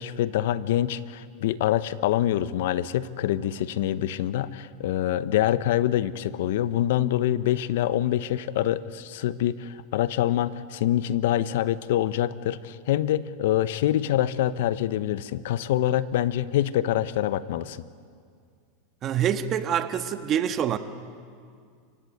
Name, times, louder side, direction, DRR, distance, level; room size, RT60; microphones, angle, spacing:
voice 1, 0.0-17.8, left 12 dB, 75° left, 0.9 m, -25 dB
voice 2, 19.0-20.8, right 9 dB, 35° right, 1.5 m, -25 dB
29.5 x 16.5 x 9.5 m
supercardioid pair, 125°, 0 cm